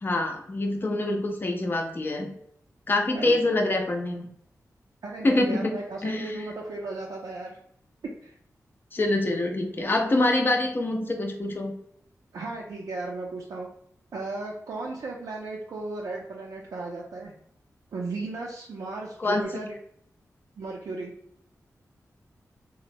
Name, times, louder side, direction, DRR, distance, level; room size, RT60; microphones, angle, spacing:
voice 1, 0.0-2.3 2.9-4.3 5.2-6.4 8.9-11.7 19.2-19.4, left 2 dB, 35° left, 3 dB, 0.5 m, -25 dB
voice 2, 5.0-7.6 8.2-8.3 12.3-13.7 14.1-17.3 17.9-19.8 20.6-21.1, right 3 dB, 80° right, -3 dB, 0.4 m, -35 dB
3.0 x 2.1 x 2.5 m, 0.69 s
wide cardioid pair, 95°, 6 cm